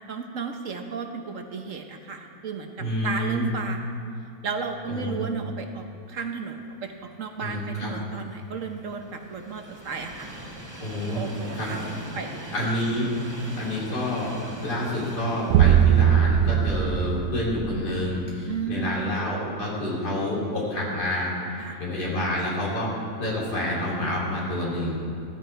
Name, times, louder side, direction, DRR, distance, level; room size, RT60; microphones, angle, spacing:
voice 1, 0.1-3.9 4.4-10.3 11.1-11.8 12.1-12.5 18.5-19.0 21.6-21.8, right 5 dB, 55° right, 5 dB, 1.1 m, -34 dB
voice 2, 2.8-3.5 4.9-5.2 7.4-7.9 10.8-11.2 11.6-11.7 12.5-13.1 13.6-14.4 14.6-22.9 23.2-25.0, left 1 dB, 75° left, -5 dB, 3.7 m, -28 dB
Train, 7.7-17.9 18.3-18.4 19.5-19.6, right 1 dB, 10° right, 1.5 m, -41 dB
sound 1, 15.5-18.1, right 9 dB, 85° right, 1.2 m, -20 dB
14.0 x 13.5 x 4.6 m, 2.4 s
omnidirectional pair, 1.8 m